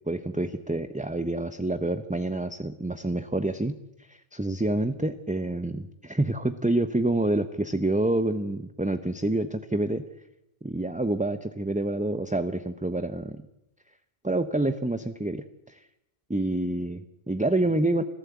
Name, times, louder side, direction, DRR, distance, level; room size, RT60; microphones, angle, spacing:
voice 1, 0.1-3.8 4.1-10.0 10.6-13.4 14.2-15.8 16.3-18.0, right 2 dB, 10° right, 10 dB, 0.7 m, -27 dB
25.5 x 15.0 x 8.2 m, 0.88 s
omnidirectional pair, 1.0 m